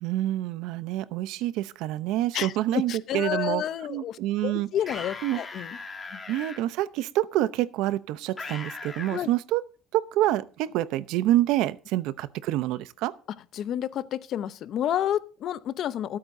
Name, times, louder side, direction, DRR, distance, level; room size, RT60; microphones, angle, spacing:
voice 1, 0.0-3.6 3.9-4.7 5.2-5.4 6.3-9.6 9.9-13.1, right 14 dB, 80° right, 0.7 m, -27 dB
voice 2, 2.3-5.8 6.1-6.2 9.1-9.3 13.5-16.2, left 10 dB, 50° left, 0.7 m, -30 dB
sound 1, 4.8-6.6 8.4-9.2, left 4 dB, 20° left, 2.3 m, -38 dB
25.5 x 8.8 x 2.7 m
cardioid pair, 145°, 0 cm